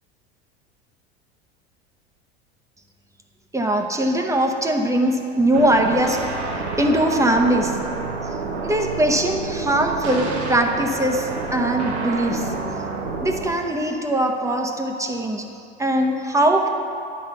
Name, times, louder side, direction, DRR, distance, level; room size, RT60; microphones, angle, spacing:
voice 1, 3.5-6.2 6.8-7.8 8.6-12.5 13.2-15.5 15.8-16.7, right 1 dB, 10° right, 3 dB, 0.8 m, -21 dB
sound 1, 5.5-13.5, right 4 dB, 85° right, 1.2 m, -29 dB
9.7 x 4.2 x 6.7 m, 2.7 s
hypercardioid pair, 85°, 33 cm